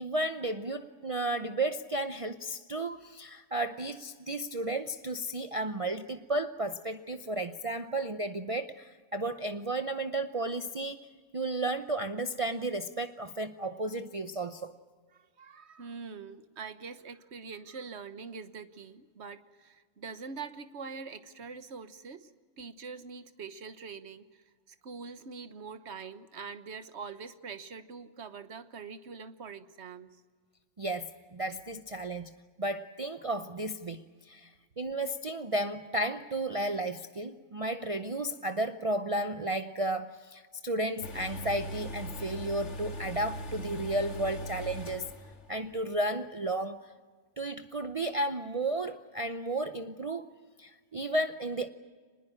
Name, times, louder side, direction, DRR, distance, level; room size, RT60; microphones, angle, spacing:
voice 1, 0.0-11.1 11.3-14.7 30.8-32.3 32.6-34.5 34.8-45.1 45.5-46.9 47.4-50.3 50.6-51.7, right 1 dB, 35° right, 8 dB, 0.7 m, -33 dB
voice 2, 15.1-22.3 22.6-30.2, right 5 dB, 60° right, 12 dB, 1.4 m, -44 dB
sound 1, 41.0-45.5 45.7-45.8, equal, 65° left, 2.2 m, -40 dB
25.5 x 21.0 x 8.7 m, 1.5 s
omnidirectional pair, 1.3 m